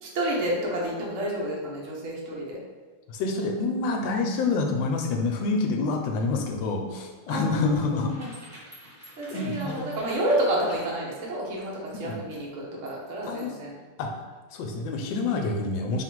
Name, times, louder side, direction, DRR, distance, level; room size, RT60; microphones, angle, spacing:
voice 1, 0.0-2.6 7.3-8.3 9.2-13.7, right 1 dB, 60° right, -3 dB, 0.8 m, -30 dB
voice 2, 3.1-8.1 9.3-9.9 11.9-12.2 13.3-13.5 14.0-14.1 14.5-16.0, left 3 dB, 75° left, 3 dB, 1.2 m, -27 dB
sound 1, 6.9-13.6, equal, 10° right, 1.1 m, -49 dB
3.6 x 2.4 x 4.4 m, 1.4 s
omnidirectional pair, 2.2 m